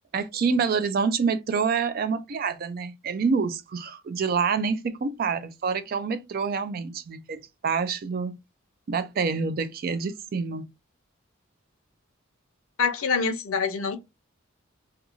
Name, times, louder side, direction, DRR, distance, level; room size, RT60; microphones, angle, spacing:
voice 1, 0.1-8.4 8.9-10.7, right 5 dB, 45° right, 0.3 m, -27 dB
voice 2, 12.8-14.0, left 5 dB, 80° left, 0.6 m, -25 dB
2.4 x 2.3 x 2.9 m
head